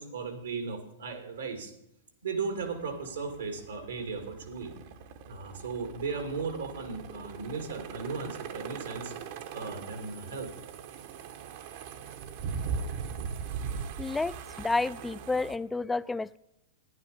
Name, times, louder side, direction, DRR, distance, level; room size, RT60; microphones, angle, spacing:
voice 1, 0.0-1.7 2.2-4.7 5.3-9.2 9.5-10.5, right 4 dB, 85° right, 5 dB, 2.2 m, -36 dB
sound 1, 2.6-15.6, right 6 dB, 60° right, 1.0 m, -40 dB
voice 2, 14.0-16.4, left 3 dB, 10° left, 15 dB, 0.3 m, -30 dB
11.5 x 10.5 x 5.2 m, 0.86 s
hypercardioid pair, 105°, 0 cm